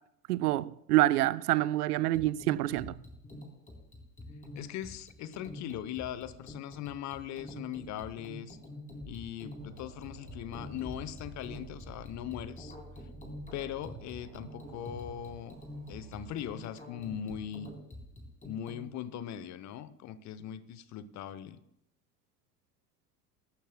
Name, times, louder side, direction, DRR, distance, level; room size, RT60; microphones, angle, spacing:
voice 1, 0.3-2.9, right 15 dB, 70° right, 0.5 m, -27 dB
sound 1, 2.1-18.9, left 1 dB, 15° left, 3.6 m, -46 dB
voice 2, 4.5-8.6 9.1-12.7 13.5-15.6 15.9-17.7 18.4-21.6, left 10 dB, 35° left, 0.8 m, -40 dB
sound 2, 9.6-16.4, right 3 dB, 45° right, 3.9 m, -51 dB
23.5 x 12.0 x 2.2 m
figure-of-eight pair, 70°, 48 cm